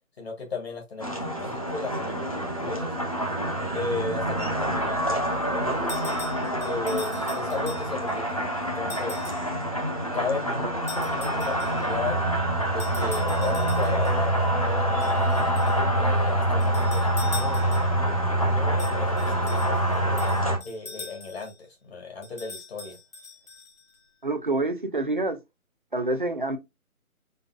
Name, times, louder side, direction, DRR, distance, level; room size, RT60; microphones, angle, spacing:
voice 1, 0.2-2.9 3.7-5.9 6.5-8.2 8.6-9.2 10.1-12.2 12.7-15.5 15.9-21.5 21.9-23.0, left 4 dB, 45° left, 1.7 m, -35 dB
sound 1, 1.0-20.6, right 1 dB, 25° left, 0.6 m, -26 dB
sound 2, 5.9-8.1 8.9-9.5 10.9-11.9 12.8-14.2 15.0-15.8 16.6-18.0 18.8-21.6 22.2-24.0, left 4 dB, 70° left, 2.3 m, -42 dB
voice 2, 24.2-25.4 25.9-26.6, right 2 dB, 35° right, 0.5 m, -27 dB
5.4 x 4.0 x 2.5 m
figure-of-eight pair, 160°, 43 cm